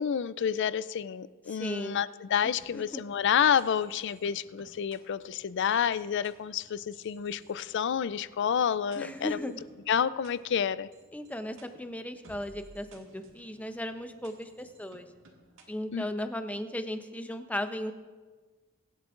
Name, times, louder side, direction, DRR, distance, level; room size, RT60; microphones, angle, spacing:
voice 1, 0.0-9.4 9.9-10.9 15.9-16.1, left 8 dB, 60° left, 16 dB, 0.4 m, -29 dB
voice 2, 1.5-2.1 2.7-2.8 9.0-9.6 11.1-15.1 15.7-17.9, left 1 dB, 5° left, 8 dB, 0.6 m, -36 dB
sound 1, 2.4-16.2, right 1 dB, 65° right, 1.9 m, -58 dB
22.5 x 11.0 x 2.5 m, 1.3 s
head